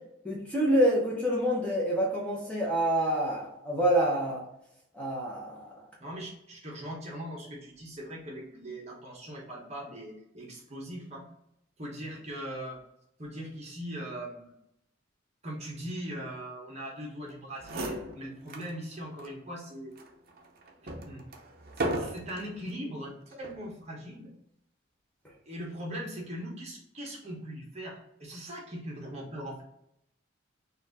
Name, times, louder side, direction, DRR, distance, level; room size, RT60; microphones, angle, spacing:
voice 1, 0.2-4.4 4.9-5.8, right 1 dB, 5° left, -4 dB, 0.9 m, -27 dB
voice 2, 6.0-11.3 11.8-12.8 13.2-14.5 15.4-20.0 21.0-21.2 21.8-24.3 25.4-29.6, equal, 35° right, -2 dB, 1.2 m, -40 dB
sound 1, 17.3-17.4 17.6-18.7 19.2-19.3 20.0-22.5 23.3-23.7, right 1 dB, 50° right, 0.7 m, -36 dB
4.4 x 2.6 x 4.0 m, 0.78 s
head